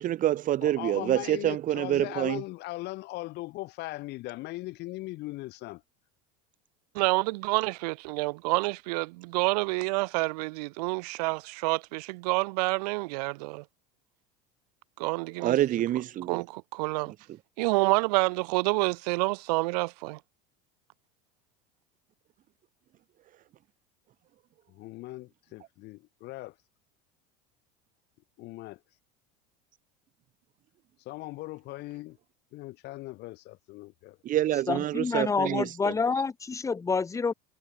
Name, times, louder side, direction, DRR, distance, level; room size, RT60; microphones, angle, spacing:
voice 1, 0.0-2.4 15.4-16.4 34.2-35.9, right 13 dB, 40° right, 2.1 m, -27 dB
voice 2, 0.6-5.8 24.7-26.5 28.4-28.8 31.1-32.2 32.5-34.2, left 19 dB, 55° left, 3.7 m, -39 dB
voice 3, 6.9-13.6 15.0-15.5 16.3-17.1 17.6-20.2, right 25 dB, 80° right, 3.2 m, -28 dB
voice 4, 34.7-37.3, left 4 dB, 15° left, 1.2 m, -28 dB
supercardioid pair, 125°, 20 cm